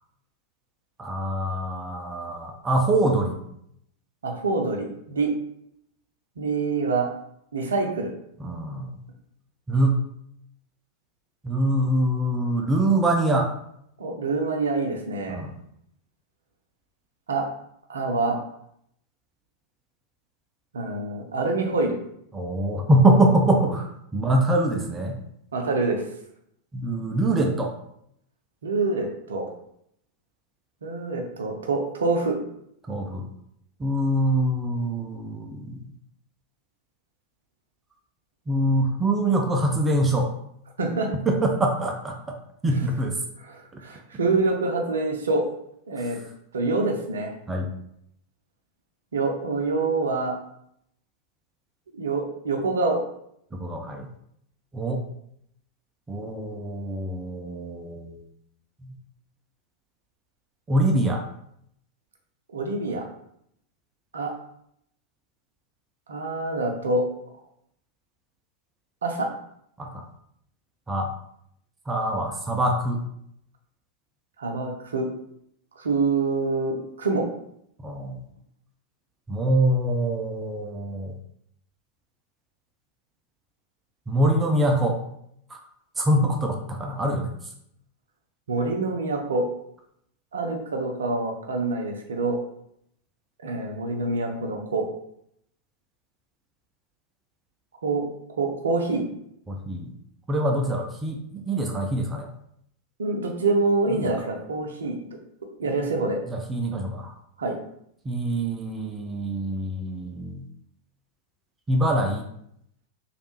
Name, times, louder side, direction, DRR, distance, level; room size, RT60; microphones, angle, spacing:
voice 1, 1.0-3.4 8.4-9.0 9.7-10.0 11.4-13.5 15.3-15.5 22.3-25.2 26.7-27.7 32.9-33.2 33.8-35.8 38.5-40.3 41.3-42.4 42.6-43.2 43.7-43.8 47.5-47.7 53.5-54.1 54.7-55.1 56.1-58.2 58.8-58.9 60.7-61.2 69.8-70.0 70.9-71.1 71.9-73.0 77.8-78.2 79.3-81.1 84.1-85.0 85.5-85.6 86.0-87.4 99.5-99.9 100.3-102.3 103.9-104.1 106.3-107.1 108.0-110.4 111.7-112.2, right 1 dB, 15° right, 2 dB, 0.4 m, -24 dB
voice 2, 4.2-5.3 6.4-7.1 7.5-8.1 14.0-15.4 17.3-17.5 17.9-18.4 20.7-22.0 25.5-26.0 28.6-29.5 30.8-32.4 40.8-41.1 42.8-42.9 43.4-45.5 45.9-46.2 46.5-47.3 49.1-50.4 51.9-53.0 62.5-63.1 64.1-64.3 66.1-67.1 69.0-69.3 74.4-75.1 75.8-77.3 88.5-89.5 90.3-92.4 93.4-94.9 97.8-98.1 98.4-99.0 103.0-105.0 105.6-106.2 107.4-107.6, right 3 dB, 65° right, 2 dB, 0.6 m, -26 dB
3.2 x 2.4 x 3.0 m, 0.72 s
figure-of-eight pair, 90°, 0 cm